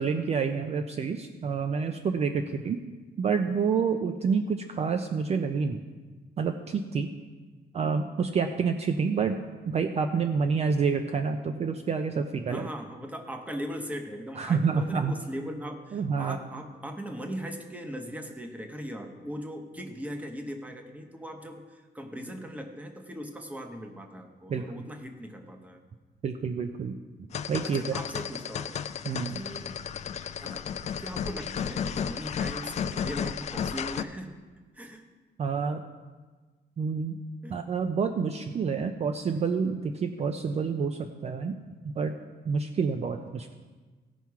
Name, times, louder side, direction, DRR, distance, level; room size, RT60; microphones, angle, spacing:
voice 1, 0.0-2.8 3.2-5.8 6.4-7.1 7.7-9.4 9.7-12.7 14.3-15.1 15.9-16.4 24.5-24.9 26.2-27.0 27.5-27.9 29.0-29.4 35.4-35.8 36.8-37.1 37.5-41.6 41.8-42.2 42.4-43.5, right 5 dB, 40° right, 6 dB, 0.5 m, -28 dB
voice 2, 12.5-25.8 27.6-28.9 29.3-29.8 30.4-30.7 31.0-34.3 34.7-35.0 37.4-37.6, equal, 10° right, 5 dB, 0.9 m, -39 dB
sound 1, 27.3-34.0, left 8 dB, 40° left, 0.4 m, -33 dB
16.5 x 5.8 x 4.7 m, 1.3 s
wide cardioid pair, 165°, 17 cm